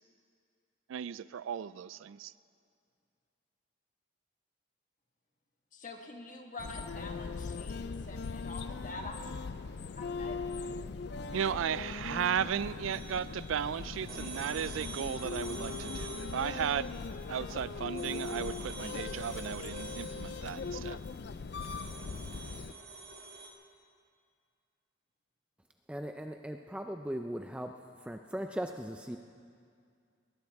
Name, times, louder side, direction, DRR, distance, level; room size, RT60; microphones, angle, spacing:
voice 1, 0.9-2.3 11.3-17.0 17.3-21.0, right 8 dB, 80° right, 0.3 m, -35 dB
voice 2, 5.7-9.2 10.0-10.4, left 2 dB, 40° left, 1.5 m, -46 dB
sound 1, 6.6-22.7, left 4 dB, 55° left, 0.4 m, -40 dB
sound 2, 12.9-23.5, right 3 dB, 50° right, 1.8 m, -48 dB
voice 3, 25.9-27.7 28.0-29.2, equal, 5° right, 0.4 m, -38 dB
20.5 x 19.5 x 3.5 m
head